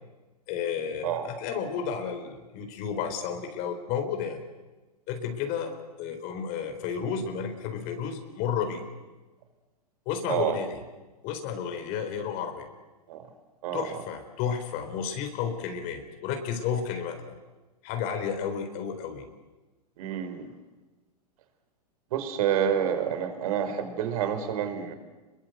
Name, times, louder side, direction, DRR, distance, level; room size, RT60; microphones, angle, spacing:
voice 1, 0.5-4.4 5.1-8.8 10.1-10.8 11.2-12.7 13.7-17.4 17.8-19.3, left 7 dB, 45° left, 6 dB, 4.1 m, -32 dB
voice 2, 20.0-20.5 22.1-24.9, right 9 dB, 60° right, 9 dB, 4.5 m, -28 dB
29.5 x 22.5 x 8.0 m, 1.2 s
hypercardioid pair, 115°, 21 cm